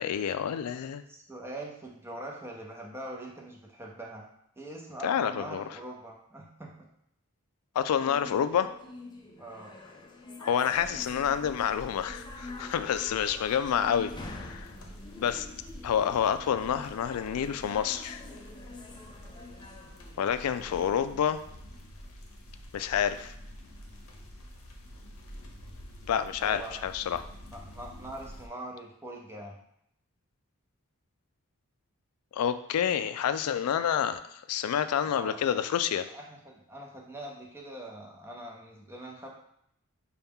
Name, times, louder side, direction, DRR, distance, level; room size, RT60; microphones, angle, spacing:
voice 1, 0.0-1.0 5.0-5.6 7.8-8.7 10.4-14.7 15.2-15.5 15.8-18.2 20.2-21.4 22.7-23.3 26.1-27.2 32.3-34.2 34.5-36.0, left 8 dB, 90° left, 11 dB, 0.3 m, -28 dB
voice 2, 1.1-4.2 4.6-6.9 9.4-9.8 26.4-26.7 27.4-29.6 35.0-35.6 36.1-39.3, right 1 dB, 10° right, -1 dB, 0.7 m, -43 dB
sound 1, 7.8-20.8, left 2 dB, 20° left, 0.5 m, -46 dB
sound 2, 10.7-28.5, equal, 70° left, 0.8 m, -48 dB
5.6 x 2.3 x 3.5 m, 0.74 s
head